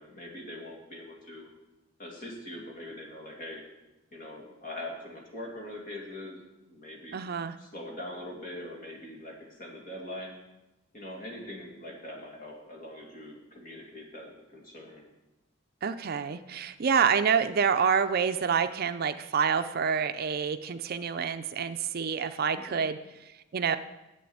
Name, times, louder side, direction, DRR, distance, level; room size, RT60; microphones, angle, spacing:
voice 1, 0.0-1.5 2.0-3.6 4.1-7.2 7.6-10.3 10.9-15.1 22.5-22.8, left 1 dB, 45° left, -1 dB, 2.5 m, -42 dB
voice 2, 7.1-7.5 15.8-23.0 23.5-23.8, right 6 dB, 50° right, 10 dB, 0.4 m, -27 dB
7.7 x 7.5 x 8.5 m, 0.99 s
head